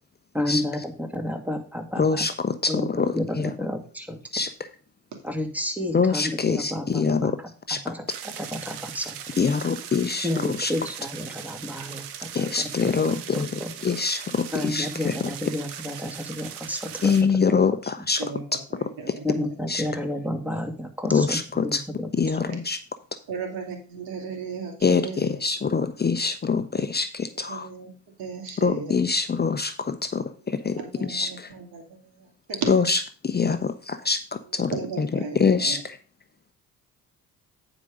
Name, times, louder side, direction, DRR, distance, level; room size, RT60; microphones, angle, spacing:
voice 1, 0.3-2.3 2.7-4.2 5.2-7.3 7.8-9.2 10.2-13.7 14.5-17.1 17.5-17.6 19.2-22.1, left 1 dB, 5° right, 4 dB, 2.2 m, -31 dB
voice 2, 2.0-3.5 4.3-4.5 5.9-7.4 7.7-7.8 9.4-10.7 12.3-13.5 13.8-15.3 17.0-18.2 19.7-19.8 21.1-21.8 22.1-22.8 24.8-27.7 28.6-31.5 32.7-35.1 35.3-36.0, left 5 dB, 25° left, 10 dB, 0.8 m, -24 dB
sound 1, 8.1-17.2, right 9 dB, 90° right, 1.0 m, -39 dB
voice 3, 18.7-19.5 22.5-22.6 23.3-25.2 27.5-27.9 28.2-29.0 30.4-32.9 34.5-35.8, right 5 dB, 70° right, 4 dB, 2.6 m, -35 dB
9.2 x 5.0 x 5.2 m, 0.37 s
supercardioid pair, 60°, 38 cm